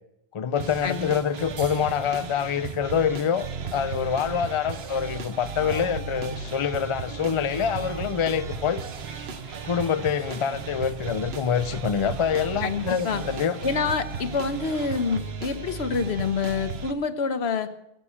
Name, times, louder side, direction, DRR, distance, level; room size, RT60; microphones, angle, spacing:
voice 1, 0.3-8.8 9.6-13.6, left 7 dB, 40° left, 0.5 m, -26 dB
sound 1, 0.6-16.9, right 5 dB, 80° right, 1.2 m, -36 dB
sound 2, 0.7-15.2, right 5 dB, 40° right, 0.6 m, -44 dB
Bird vocalization bird call bird song, 8.1-15.5, left 1 dB, 10° left, 5.3 m, -57 dB
voice 2, 12.6-13.2 13.6-17.7, left 5 dB, 80° left, 1.2 m, -27 dB
16.0 x 8.5 x 8.4 m
omnidirectional pair, 1.0 m